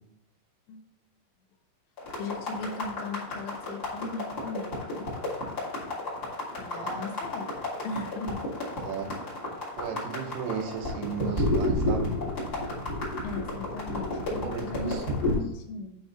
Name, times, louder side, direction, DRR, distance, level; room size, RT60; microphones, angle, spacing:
sound 1, 2.0-15.4, left 1 dB, 25° left, 2.7 m, -31 dB
voice 1, 2.2-5.1 6.6-8.4 13.2-16.0, left 3 dB, 85° left, 5 dB, 3.5 m, -38 dB
voice 2, 6.7-7.1 8.8-9.2 9.8-12.1 14.4-15.0, right 7 dB, 85° right, 2 dB, 3.8 m, -35 dB
10.5 x 4.7 x 4.2 m, 0.87 s
omnidirectional pair, 5.6 m